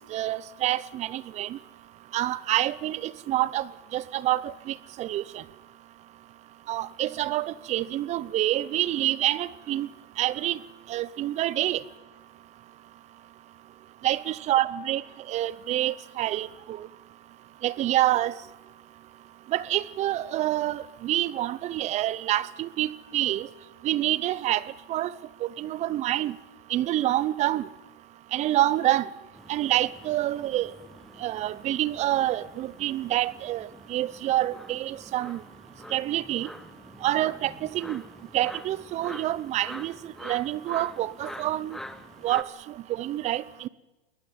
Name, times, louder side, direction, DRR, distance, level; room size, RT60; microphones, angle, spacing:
voice 1, 0.1-1.6 2.1-5.4 6.7-9.9 10.2-10.6 10.9-11.8 14.0-16.9 17.6-18.3 19.5-23.5 23.8-24.6 24.9-25.1 25.4-26.3 26.7-27.7 28.3-29.1 29.5-30.7 31.2-35.4 35.9-36.5 37.0-38.0 38.3-41.8 42.2-42.5 42.9-43.7, right 14 dB, 20° right, 21 dB, 0.7 m, -27 dB
sound 1, 29.3-42.4, left 1 dB, ahead, 1.0 m, -46 dB
22.0 x 18.0 x 9.3 m, 1.1 s
hypercardioid pair, 135°, 31 cm